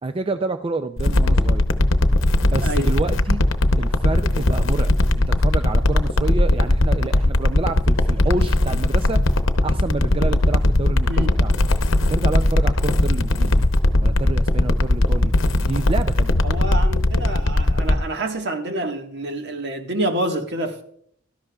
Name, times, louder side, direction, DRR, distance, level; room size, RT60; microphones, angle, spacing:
voice 1, 0.0-1.7 2.4-3.5 3.8-9.2 9.6-11.6 12.1-13.7 14.0-15.3 15.6-16.4, right 3 dB, 25° right, 0.4 m, -28 dB
sound 1, 1.0-17.9, left 1 dB, 75° left, 0.8 m, -18 dB
voice 2, 2.6-2.9 11.1-11.3 16.4-20.8, right 1 dB, 60° right, 1.5 m, -27 dB
16.0 x 13.0 x 2.3 m
head